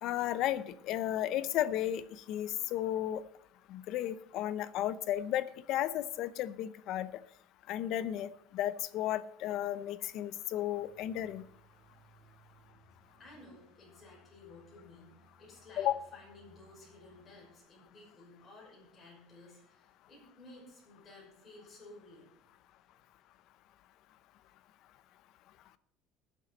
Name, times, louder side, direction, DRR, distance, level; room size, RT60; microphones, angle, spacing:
voice 1, 0.0-3.2 3.7-7.1 7.7-11.4 15.8-15.9, left 12 dB, 55° left, 15 dB, 0.6 m, -34 dB
sound 1, 10.6-17.6, right 2 dB, 15° right, 6.4 m, -64 dB
voice 2, 13.2-22.3, left 2 dB, 20° left, -4 dB, 5.5 m, -55 dB
19.5 x 7.4 x 4.0 m, 0.70 s
cardioid pair, 160°, 0 cm